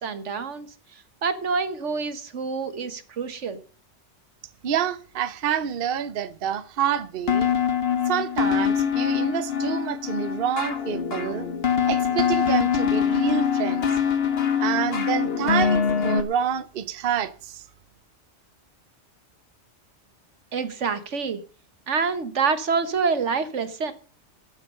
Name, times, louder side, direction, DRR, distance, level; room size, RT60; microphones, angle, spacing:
voice 1, 0.0-0.7 1.2-3.6 20.5-21.4 21.9-23.9, right 5 dB, 85° right, 1.6 m, -26 dB
voice 2, 4.6-7.5 8.1-11.5 11.9-14.0 14.6-17.6, right 9 dB, 55° right, 0.9 m, -27 dB
sound 1, 7.3-16.2, left 7 dB, 60° left, 1.4 m, -24 dB
14.5 x 8.3 x 6.4 m
omnidirectional pair, 1.2 m